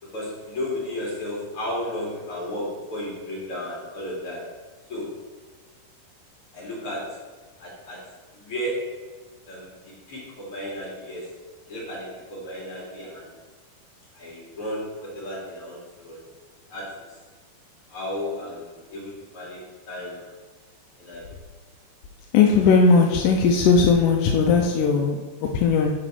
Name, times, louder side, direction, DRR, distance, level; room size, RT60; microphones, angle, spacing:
voice 1, 0.0-4.5 4.9-5.2 6.5-7.3 7.6-8.1 8.3-9.1 9.5-9.8 10.1-11.3 11.7-13.3 14.1-16.2 16.7-17.1 17.9-20.3 21.0-21.3, left 1 dB, 40° left, -6 dB, 3.7 m, -33 dB
voice 2, 22.3-25.9, left 5 dB, 80° left, 2 dB, 1.9 m, -18 dB
9.9 x 5.2 x 4.9 m, 1.3 s
omnidirectional pair, 4.3 m